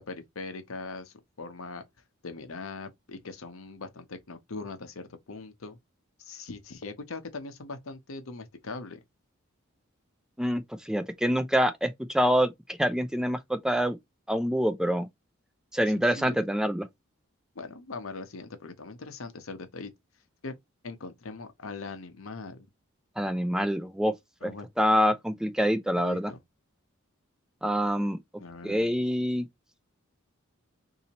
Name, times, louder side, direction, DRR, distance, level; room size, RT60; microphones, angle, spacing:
voice 1, 0.0-1.8 2.2-5.8 6.2-9.0 15.9-16.4 17.5-19.9 20.4-20.5 20.8-22.7 24.4-24.7 26.0-26.4 28.4-28.9, left 3 dB, 75° left, 0.8 m, -41 dB
voice 2, 10.4-12.5 12.8-14.0 14.3-15.1 15.7-16.9 23.2-24.1 24.4-24.5 24.8-26.3 27.6-28.2 28.6-29.5, equal, 5° right, 0.3 m, -26 dB
4.0 x 2.8 x 2.8 m
head